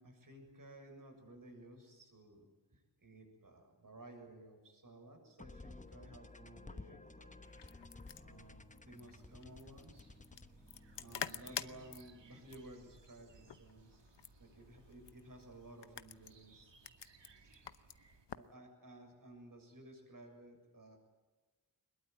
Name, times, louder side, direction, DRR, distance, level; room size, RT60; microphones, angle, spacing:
voice 1, 0.0-7.3 8.2-10.1 10.9-16.7 17.2-17.6 18.3-21.0, right 1 dB, 45° right, 4 dB, 7.0 m, -56 dB
sound 1, 5.4-12.7, left 2 dB, 15° left, 0.9 m, -55 dB
sound 2, 7.4-18.5, left 8 dB, 70° left, 1.0 m, -49 dB
sound 3, 8.9-18.3, right 4 dB, 70° right, 2.4 m, -64 dB
22.5 x 21.5 x 9.4 m, 1.3 s
wide cardioid pair, 105°, 44 cm